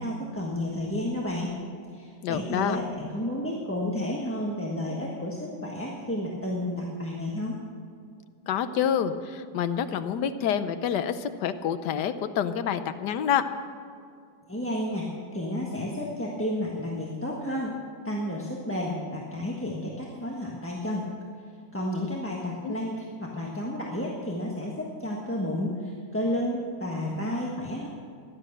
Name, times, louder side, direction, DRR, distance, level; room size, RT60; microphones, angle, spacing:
voice 1, 0.0-1.5 1.9-7.6 14.5-17.7 18.0-21.0 21.7-27.9, left 1 dB, 10° left, -3 dB, 1.3 m, -31 dB
voice 2, 2.2-2.8 8.5-13.4 22.6-22.8, left 8 dB, 75° left, 11 dB, 1.4 m, -27 dB
15.5 x 11.5 x 6.6 m, 2.3 s
omnidirectional pair, 1.8 m